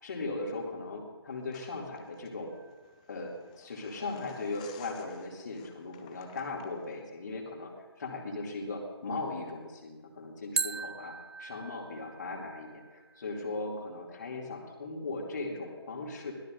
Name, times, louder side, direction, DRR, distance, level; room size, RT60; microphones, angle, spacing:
voice 1, 0.0-2.5 3.1-7.7 8.0-11.1 11.4-16.3, left 3 dB, 40° left, 0 dB, 2.6 m, -38 dB
sound 1, 1.5-7.0, left 8 dB, 15° left, 0.7 m, -55 dB
sound 2, 2.5-3.5 10.6-13.5, right 4 dB, 70° right, 0.4 m, -39 dB
22.5 x 17.0 x 2.6 m, 1.3 s
figure-of-eight pair, 150°, 14 cm